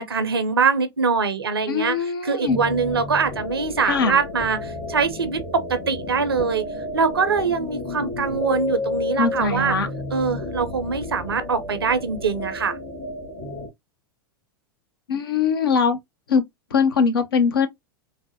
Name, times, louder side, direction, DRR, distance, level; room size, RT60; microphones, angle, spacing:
voice 1, 0.0-2.0 2.2-5.4 5.7-6.6 6.9-9.7 10.1-12.8, right 5 dB, 85° right, 0.7 m, -23 dB
voice 2, 1.7-2.6 3.8-4.2 9.2-9.9 15.1-16.0 16.3-17.7, left 5 dB, 75° left, 0.8 m, -21 dB
sound 1, 2.5-13.7, left 2 dB, 55° left, 1.9 m, -32 dB
4.0 x 2.1 x 2.8 m
figure-of-eight pair, 90°, 12 cm